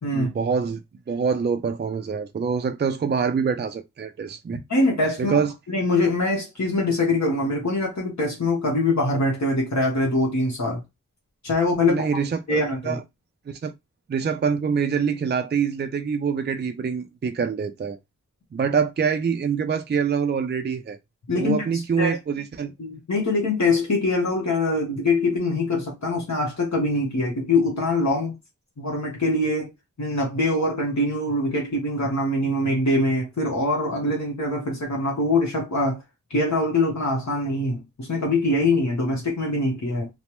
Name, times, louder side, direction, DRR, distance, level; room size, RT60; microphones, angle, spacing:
voice 1, 0.1-0.8 1.1-4.6 5.2-5.5 11.9-13.0 13.5-13.7 14.1-18.0 18.5-21.0 21.3-22.7, right 6 dB, 35° right, 0.4 m, -25 dB
voice 2, 4.7-5.4 5.7-10.8 11.4-12.2 12.5-13.0 21.3-22.2 22.8-28.4 28.8-29.7 30.0-36.0 36.3-40.1, left 2 dB, 60° left, 1.0 m, -23 dB
3.1 x 2.0 x 2.9 m
wide cardioid pair, 55°, 31 cm